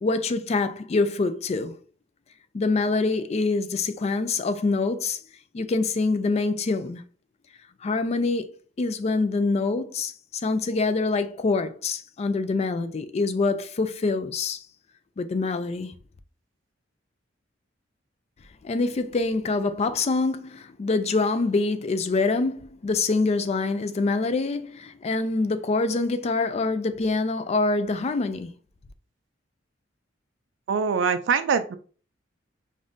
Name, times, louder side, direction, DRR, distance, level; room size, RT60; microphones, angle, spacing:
voice 1, 0.0-1.8 2.5-5.2 5.5-7.0 7.8-8.5 8.8-10.1 10.4-14.6 15.2-15.9 18.6-28.5, left 3 dB, 35° left, 0.3 m, -25 dB
voice 2, 30.7-31.8, right 6 dB, 70° right, 0.3 m, -23 dB
5.2 x 2.5 x 2.5 m
head